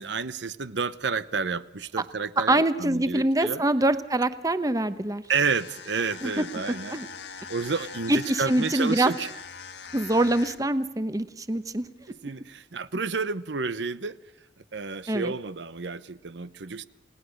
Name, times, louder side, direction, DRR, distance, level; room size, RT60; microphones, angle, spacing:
voice 1, 0.0-3.6 5.3-7.0 7.5-9.3 12.2-14.2 14.7-16.8, right 5 dB, 80° right, 0.9 m, -30 dB
voice 2, 2.4-5.2 6.2-6.4 6.9-7.1 8.1-9.1 9.9-11.9 15.1-15.3, right 1 dB, 20° right, 1.0 m, -24 dB
sound 1, 5.2-10.8, left 6 dB, 70° left, 1.6 m, -42 dB
29.5 x 18.5 x 6.5 m
head